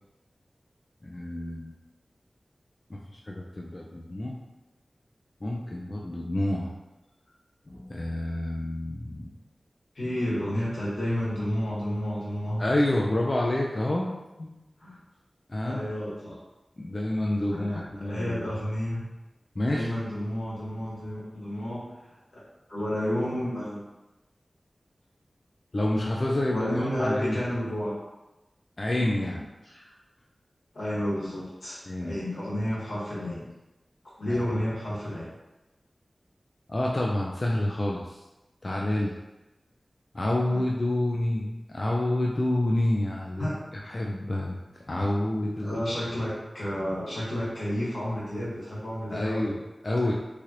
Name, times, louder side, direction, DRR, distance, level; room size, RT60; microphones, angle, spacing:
voice 1, 1.0-1.7 2.9-4.4 5.4-6.7 7.7-9.3 12.6-14.2 15.5-15.9 16.8-18.5 19.6-19.9 25.7-27.4 28.8-29.5 31.9-32.2 34.3-34.4 36.7-38.2 38.6-39.2 40.1-44.6 44.9-45.8 49.1-50.1, left 1 dB, 45° left, -2 dB, 0.3 m, -28 dB
voice 2, 9.9-12.7 14.4-14.5 14.8-15.0 15.6-16.3 17.5-19.0 19.7-21.8 22.3-22.4 22.7-23.8 26.5-28.0 28.9-29.4 29.6-29.9 30.7-33.5 34.2-35.3 40.5-40.6 43.4-43.6 45.6-49.5, equal, 90° left, -10 dB, 1.4 m, -31 dB
3.1 x 2.5 x 2.9 m, 1.0 s
wide cardioid pair, 50°, 0 cm